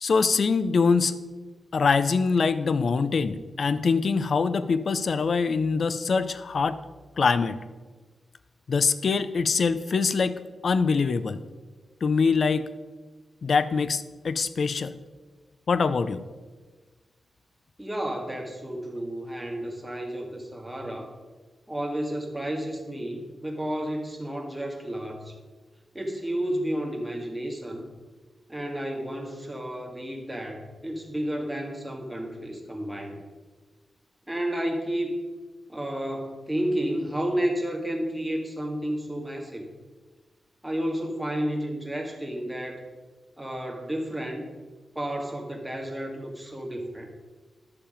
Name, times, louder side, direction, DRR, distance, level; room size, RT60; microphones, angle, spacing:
voice 1, 0.0-1.1 1.7-6.8 7.2-7.6 8.7-11.4 12.0-12.7 13.4-14.9 15.7-16.2, left 5 dB, 60° left, 14 dB, 0.6 m, -24 dB
voice 2, 17.8-21.1 21.7-25.4 25.9-27.9 28.5-33.2 34.3-35.2 35.7-39.7 40.6-42.9 43.4-44.5 45.0-47.1, right 1 dB, 5° right, 0 dB, 2.1 m, -31 dB
11.5 x 6.9 x 5.1 m, 1.3 s
cardioid pair, 65°, 0 cm